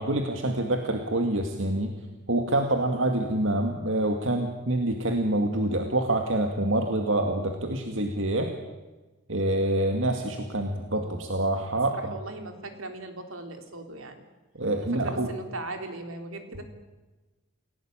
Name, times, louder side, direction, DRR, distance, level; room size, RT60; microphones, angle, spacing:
voice 1, 0.0-1.9 2.3-8.5 9.3-11.9 14.5-15.3, right 1 dB, 65° right, 4 dB, 2.2 m, -26 dB
voice 2, 11.9-14.2 14.8-16.6, right 2 dB, 80° right, 6 dB, 3.5 m, -39 dB
28.5 x 17.0 x 9.0 m, 1.2 s
head